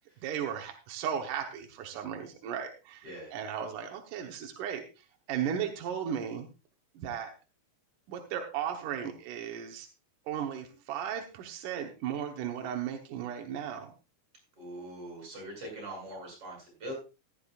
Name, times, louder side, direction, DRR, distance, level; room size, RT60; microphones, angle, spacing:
voice 1, 0.2-3.1 3.3-6.5 6.9-7.3 8.1-9.9 10.3-13.9, right 8 dB, 75° right, 3 dB, 1.9 m, -36 dB
voice 2, 3.0-3.3 14.6-16.9, right 1 dB, 30° right, 0 dB, 8.5 m, -42 dB
15.0 x 12.5 x 2.4 m, 0.31 s
omnidirectional pair, 5.1 m